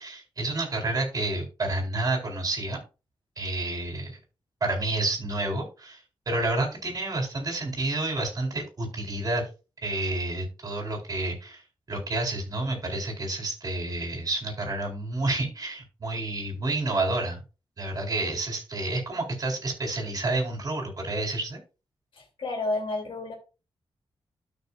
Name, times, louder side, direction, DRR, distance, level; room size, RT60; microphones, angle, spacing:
voice 1, 0.0-2.8 3.4-4.2 4.6-9.5 9.8-11.6 11.9-17.4 17.8-21.6, right 2 dB, 40° right, 0 dB, 4.3 m, -29 dB
voice 2, 22.1-23.3, left 2 dB, 70° left, 1 dB, 2.9 m, -31 dB
13.0 x 6.1 x 2.5 m, 0.31 s
wide cardioid pair, 115°, 9 cm